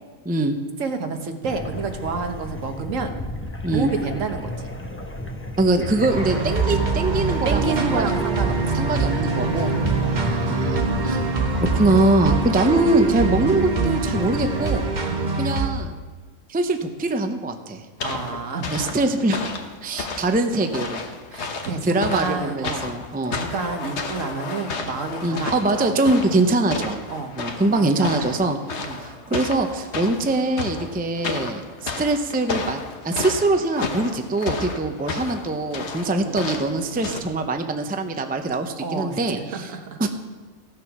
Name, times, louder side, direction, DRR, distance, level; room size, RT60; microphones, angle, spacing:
voice 1, 0.2-0.6 3.6-3.9 5.6-8.1 8.7-9.7 10.1-11.2 11.7-14.9 15.4-16.0 16.5-17.8 18.7-19.5 19.8-21.0 21.8-23.4 25.2-27.0 27.4-28.6 29.0-32.8 33.0-39.7 40.0-40.1, right 2 dB, 10° right, 6 dB, 0.5 m, -23 dB
voice 2, 0.8-3.2 3.7-4.7 7.4-8.9 9.4-10.2 15.1-15.3 18.0-18.9 21.3-22.9 23.3-26.0 26.2-26.5 27.1-27.4 27.7-28.5 28.8-29.0 36.1-36.4 36.9-37.2 38.8-40.0, right 4 dB, 75° right, 6 dB, 1.4 m, -30 dB
sound 1, 1.5-14.9, left 1 dB, 10° left, 0.8 m, -32 dB
sound 2, 6.1-15.7, right 4 dB, 35° right, 1.2 m, -24 dB
sound 3, 18.0-37.2, left 4 dB, 60° left, 1.3 m, -32 dB
15.5 x 6.6 x 6.0 m, 1.3 s
omnidirectional pair, 1.3 m